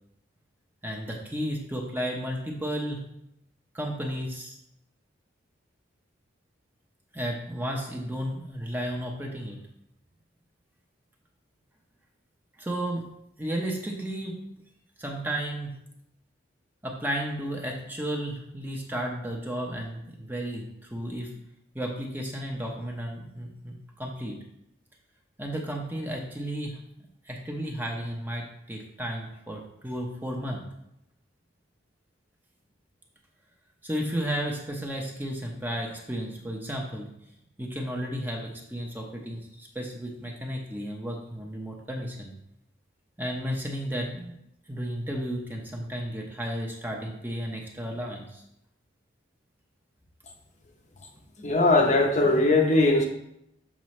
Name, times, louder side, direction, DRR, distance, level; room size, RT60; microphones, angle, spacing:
voice 1, 0.8-3.0 3.7-4.6 7.1-9.6 12.6-13.0 13.4-14.4 15.0-15.7 16.8-21.3 21.7-24.4 25.4-26.8 27.2-30.6 33.8-37.1 37.6-42.3 43.2-44.3 44.7-48.4, equal, 10° right, 0 dB, 0.8 m, -33 dB
voice 2, 51.4-53.0, left 2 dB, 35° left, 2 dB, 0.7 m, -20 dB
7.3 x 5.3 x 3.2 m, 0.79 s
head